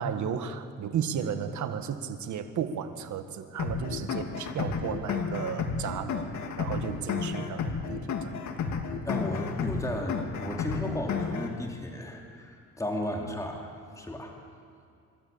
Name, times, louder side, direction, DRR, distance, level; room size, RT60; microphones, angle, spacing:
voice 1, 0.0-6.3 6.6-8.4, right 7 dB, 70° right, 8 dB, 1.6 m, -34 dB
sound 1, 3.6-11.6, left 5 dB, 70° left, 2.1 m, -32 dB
voice 2, 9.0-14.4, left 1 dB, 10° left, 0 dB, 2.9 m, -34 dB
25.0 x 13.0 x 8.7 m, 2.4 s
cardioid pair, 90°, 30 cm